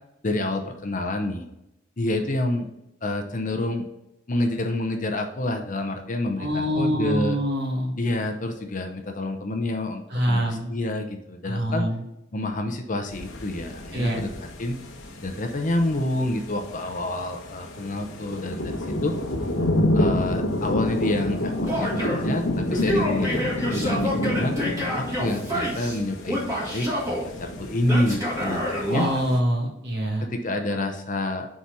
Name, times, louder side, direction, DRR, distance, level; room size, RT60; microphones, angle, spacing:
voice 1, 0.2-1.5 2.0-2.7 3.0-3.9 4.3-7.4 8.0-11.9 12.3-14.3 14.6-14.8 15.2-19.2 19.9-23.4 23.7-24.6 25.0-29.1 30.2-31.5, left 1 dB, 40° left, 5 dB, 0.7 m, -28 dB
voice 2, 6.4-7.9 10.1-10.7 11.4-12.0 13.9-14.2 28.9-30.3, equal, 55° right, 0 dB, 1.5 m, -25 dB
sound 1, 13.1-29.4, left 1 dB, 80° left, 1.0 m, -29 dB
Male speech man speaking / Yell, 21.7-22.3 22.7-26.0 26.3-27.2 27.9-29.2, equal, 15° right, 1.6 m, -27 dB
4.9 x 4.2 x 5.9 m, 0.87 s
head